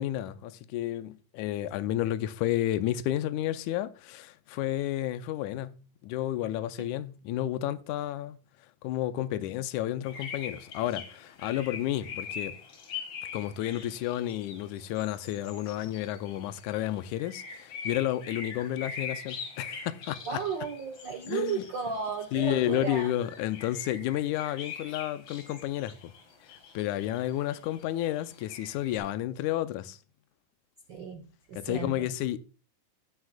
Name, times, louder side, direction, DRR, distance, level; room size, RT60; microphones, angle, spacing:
voice 1, 0.0-8.4 8.8-12.6 13.3-20.2 21.3-21.6 22.3-26.1 26.5-30.0 31.6-32.4, left 13 dB, 80° left, 2.0 m, -31 dB
sound 1, 10.1-29.0, left 6 dB, 50° left, 2.6 m, -43 dB
voice 2, 20.3-23.1 30.9-32.1, right 6 dB, 75° right, 1.0 m, -34 dB
17.0 x 6.1 x 2.3 m
omnidirectional pair, 3.7 m